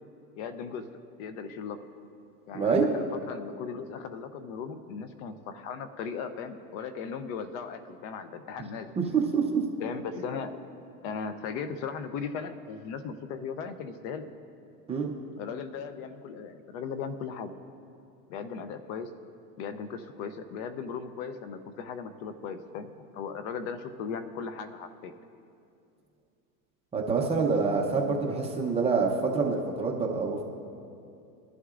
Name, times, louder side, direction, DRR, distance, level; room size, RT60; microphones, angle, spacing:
voice 1, 0.4-0.8 1.2-1.8 2.5-8.9 9.8-10.6 11.0-14.3 15.4-17.5 18.3-19.1 19.6-25.1, left 6 dB, 50° left, 11 dB, 0.7 m, -37 dB
voice 2, 2.5-2.9 9.0-9.6 14.9-15.1 26.9-30.5, right 5 dB, 15° right, 0 dB, 0.6 m, -26 dB
20.5 x 11.5 x 2.5 m, 2.6 s
supercardioid pair, 145°, 47 cm